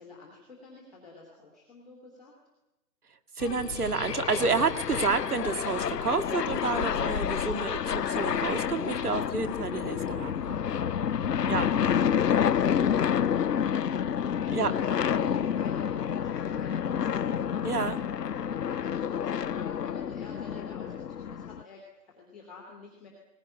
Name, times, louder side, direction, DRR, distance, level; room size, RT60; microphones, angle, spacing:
voice 1, 0.0-2.3 11.0-17.4 18.0-23.1, left 4 dB, ahead, -13 dB, 1.0 m, -48 dB
sound 1, 3.4-21.6, left 8 dB, 75° left, 0.8 m, -29 dB
voice 2, 3.4-10.6 11.5-11.7 14.5-14.7 17.6-18.0, right 4 dB, 65° right, 10 dB, 2.0 m, -29 dB
20.0 x 18.0 x 10.0 m, 0.96 s
hypercardioid pair, 165°, 49 cm